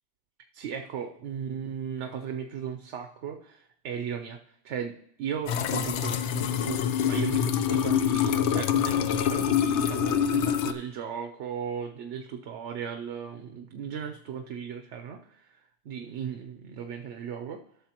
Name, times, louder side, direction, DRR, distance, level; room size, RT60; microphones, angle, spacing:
voice 1, 0.5-4.4 4.6-17.6, right 7 dB, 90° right, 5 dB, 1.0 m, -36 dB
sound 1, 5.5-10.7, left 8 dB, 85° left, 0.9 m, -25 dB
12.5 x 7.0 x 2.9 m, 0.71 s
omnidirectional pair, 1.2 m